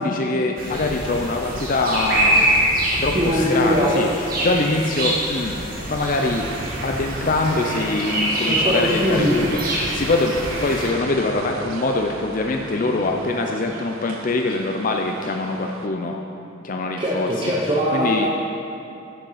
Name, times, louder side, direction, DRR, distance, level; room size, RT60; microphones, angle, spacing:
voice 1, 0.0-2.4 3.0-4.1 4.4-6.5 6.8-16.2 16.6-17.3 17.9-18.3, left 2 dB, 40° left, 2 dB, 0.5 m, -23 dB
sound 1, 0.6-10.9, right 1 dB, 45° right, 1.7 m, -25 dB
voice 2, 3.1-4.0 4.6-4.9 8.5-9.5 17.0-18.3, equal, 25° right, -5 dB, 0.8 m, -21 dB
sound 2, 6.0-15.9, right 3 dB, 85° right, 0.7 m, -36 dB
10.0 x 6.6 x 5.7 m, 2.6 s
head